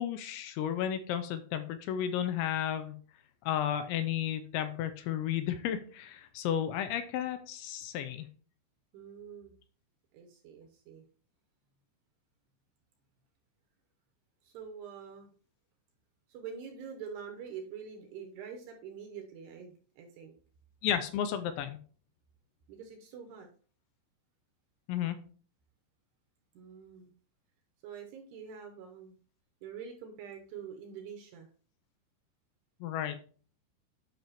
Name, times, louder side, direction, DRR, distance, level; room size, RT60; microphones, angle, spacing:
voice 1, 0.0-3.0 3.5-8.3 20.8-21.8 24.9-25.2 32.8-33.2, left 10 dB, 85° left, 10 dB, 2.8 m, -33 dB
voice 2, 8.9-9.5 10.1-11.1 14.4-15.3 16.3-20.3 22.7-23.5 26.5-27.1 27.8-29.2 29.6-31.5, right 7 dB, 75° right, 4 dB, 2.6 m, -45 dB
10.0 x 5.9 x 3.0 m, 0.41 s
omnidirectional pair, 5.5 m